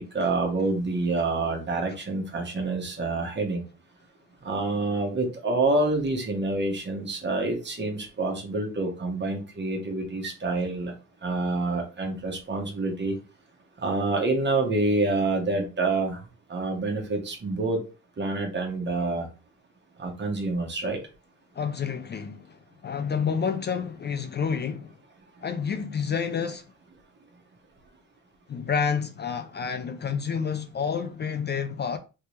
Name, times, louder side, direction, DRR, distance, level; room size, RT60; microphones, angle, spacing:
voice 1, 0.0-3.6 4.4-10.9 11.2-13.1 13.8-16.2 16.5-17.8 18.2-19.3 20.0-21.0, right 2 dB, 35° right, 1.3 m, -27 dB
voice 2, 21.5-24.9 25.4-26.7 28.5-32.0, left 6 dB, 35° left, 0.4 m, -29 dB
3.3 x 2.8 x 3.2 m
cardioid pair, 90°, 30 cm